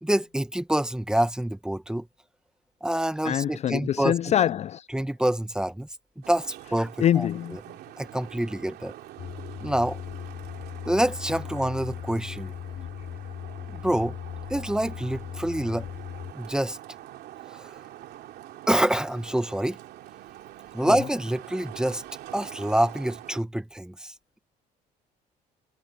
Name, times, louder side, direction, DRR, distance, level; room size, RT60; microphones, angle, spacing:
voice 1, 0.0-2.1 2.8-4.1 4.9-5.9 6.2-7.6 8.0-8.9 9.6-10.0 10.9-12.5 13.7-14.2 14.5-15.9 16.3-16.8 17.5-17.8 18.7-19.8 20.7-22.0 22.3-24.4, right 1 dB, 5° right, 1.0 m, -27 dB
voice 2, 3.3-4.9 7.0-7.6, left 10 dB, 40° left, 0.4 m, -24 dB
Traffic noise roadway noise, 6.2-23.4, right 14 dB, 75° right, 2.7 m, -45 dB
sound 1, 9.2-16.3, left 10 dB, 55° left, 5.9 m, -38 dB
cardioid pair, 110°, 17 cm